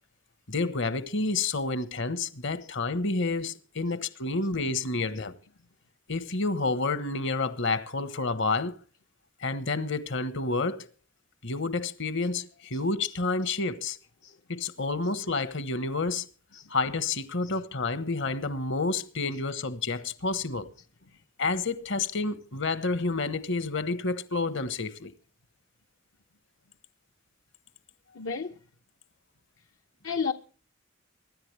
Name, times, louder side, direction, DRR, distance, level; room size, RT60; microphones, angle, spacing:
voice 1, 0.5-5.4 6.1-8.8 9.4-10.9 11.4-14.0 14.5-16.3 16.7-20.7 21.4-25.1, left 3 dB, 65° left, 1.2 m, -29 dB
voice 2, 28.1-28.6 30.0-30.3, left 5 dB, 80° left, 0.9 m, -34 dB
24.5 x 11.0 x 3.4 m
head